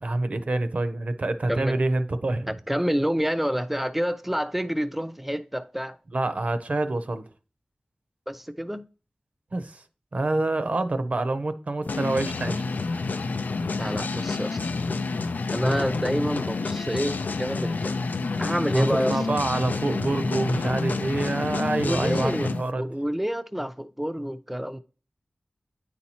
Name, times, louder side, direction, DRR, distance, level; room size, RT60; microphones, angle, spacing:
voice 1, 0.0-2.6 6.1-7.3 9.5-9.8 10.1-12.6 18.7-22.8, right 2 dB, 55° right, 0.5 m, -27 dB
voice 2, 1.5-1.8 2.5-6.0 8.3-8.8 13.8-14.6 15.5-18.0 18.4-19.2 21.8-22.5 22.8-24.8, equal, 5° right, 0.4 m, -28 dB
sound 1, 11.9-22.6, left 3 dB, 85° left, 0.4 m, -29 dB
9.6 x 4.2 x 2.9 m
wide cardioid pair, 60°, 3 cm